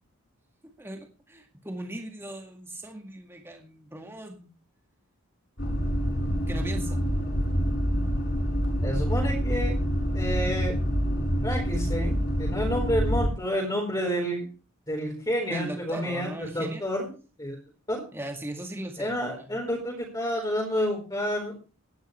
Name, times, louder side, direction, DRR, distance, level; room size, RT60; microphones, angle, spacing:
voice 1, 0.6-4.5 6.5-7.0 15.5-16.8 18.1-19.6, right 1 dB, 10° right, 4 dB, 1.9 m, -39 dB
sound 1, 5.6-13.3, equal, 50° left, 6.9 m, -26 dB
voice 2, 8.8-9.7 10.1-10.7 11.4-14.5 14.9-17.1 17.4-17.6 17.9-18.0 19.0-21.6, equal, 20° left, -3 dB, 4.2 m, -29 dB
18.0 x 11.5 x 3.3 m, 0.35 s
head